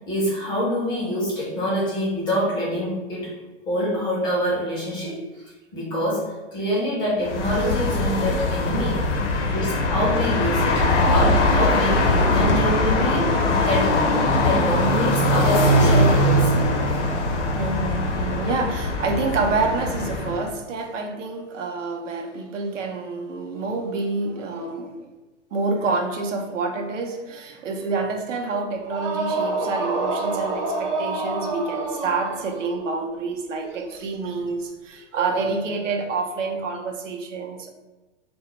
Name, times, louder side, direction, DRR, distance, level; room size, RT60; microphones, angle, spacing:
voice 1, 0.1-3.3 3.7-5.2 5.7-9.0 9.5-13.9 14.4-16.5, equal, 15° left, -6 dB, 0.4 m, -25 dB
sound 1, 7.2-20.5, left 1 dB, 70° left, 0.7 m, -21 dB
voice 2, 7.6-8.4 17.5-25.1 25.5-37.7, right 3 dB, 85° right, 3 dB, 0.6 m, -28 dB
sound 2, 28.8-32.8, right 3 dB, 45° right, 0.7 m, -27 dB
2.1 x 2.0 x 2.9 m, 1.2 s
hypercardioid pair, 130°, 37 cm